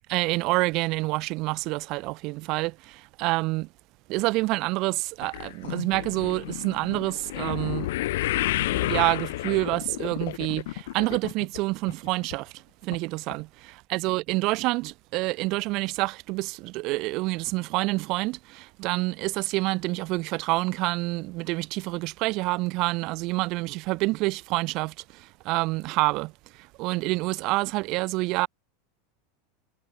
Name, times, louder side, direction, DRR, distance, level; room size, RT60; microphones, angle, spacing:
voice 1, 0.1-3.7 4.1-7.9 8.6-28.5, right 23 dB, 50° right, 3.7 m, -28 dB
sound 1, 5.2-11.6 11.9-12.4 12.9-13.0 13.3-13.4, left 16 dB, 75° left, 2.3 m, -31 dB
supercardioid pair, 125°, 0 cm